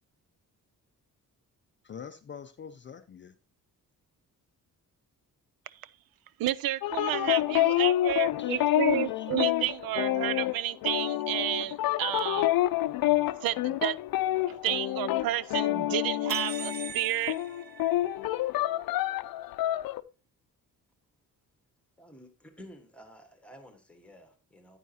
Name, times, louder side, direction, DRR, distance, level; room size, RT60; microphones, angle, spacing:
voice 1, 1.8-3.3 8.4-9.3, left 7 dB, 35° left, 0.4 m, -46 dB
voice 2, 6.4-12.5 13.4-14.0 14.6-17.3, right 13 dB, 90° right, 0.5 m, -31 dB
sound 1, 6.8-17.0 17.3-20.0, left 14 dB, 85° left, 0.5 m, -28 dB
sound 2, 16.3-18.4, right 7 dB, 30° right, 0.8 m, -41 dB
voice 3, 22.0-24.8, equal, 5° left, 1.3 m, -52 dB
9.4 x 9.1 x 2.7 m
wide cardioid pair, 175°, 34 cm